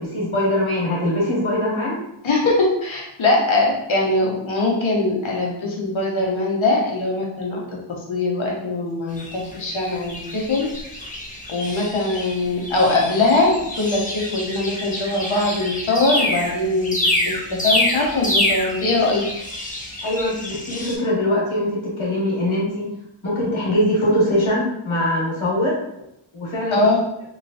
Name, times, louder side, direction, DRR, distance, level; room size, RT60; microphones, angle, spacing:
voice 1, 0.0-2.0 20.0-22.9 23.2-25.8 26.3-26.8, left 1 dB, 90° left, -5 dB, 1.4 m, -22 dB
voice 2, 2.2-7.6 8.1-10.7 11.5-19.2 26.7-27.0, left 2 dB, 75° left, -2 dB, 1.0 m, -21 dB
sound 1, 9.2-21.0, left 1 dB, 15° left, 0.8 m, -27 dB
3.1 x 2.9 x 2.7 m, 0.79 s
wide cardioid pair, 55°, 48 cm